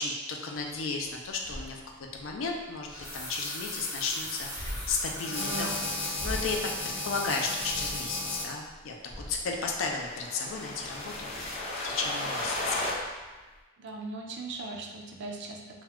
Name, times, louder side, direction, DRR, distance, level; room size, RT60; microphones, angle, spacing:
voice 1, 0.0-6.6 6.8-12.8, left 4 dB, 90° left, 1 dB, 0.4 m, -34 dB
sound 1, 0.6-13.6, equal, 15° right, 1.1 m, -46 dB
sound 2, 1.5-1.6 2.6-6.0 6.4-6.5 7.0-7.3 7.6-7.7, left 1 dB, 50° left, 1.0 m, -42 dB
sound 3, 5.1-8.5 9.6-12.9, left 2 dB, 35° left, 0.5 m, -34 dB
voice 2, 13.8-15.8, right 3 dB, 60° right, 1 dB, 0.4 m, -39 dB
2.3 x 2.1 x 3.4 m, 1.3 s
head